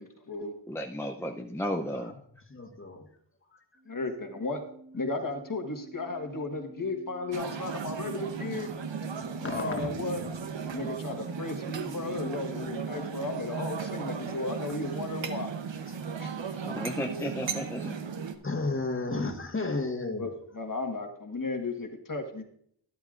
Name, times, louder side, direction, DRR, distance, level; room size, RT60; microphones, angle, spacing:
voice 1, 0.0-0.5 3.9-4.6 4.9-8.7 9.5-10.2 10.7-15.5 16.2-16.6 20.2-20.3 20.6-22.4, left 3 dB, 40° left, 4 dB, 1.5 m, -35 dB
voice 2, 0.7-2.1 16.6-18.0, equal, 5° left, 2 dB, 0.6 m, -34 dB
voice 3, 2.5-3.1 3.5-3.6 9.1-10.7 15.9-16.0 18.4-20.3, left 3 dB, 25° left, 3 dB, 1.6 m, -34 dB
sound 1, 3.8-13.4, right 1 dB, 20° right, 2.0 m, -49 dB
sound 2, 7.3-18.4, right 6 dB, 70° right, 1.0 m, -36 dB
12.0 x 11.5 x 2.5 m, 0.66 s
wide cardioid pair, 65°, 47 cm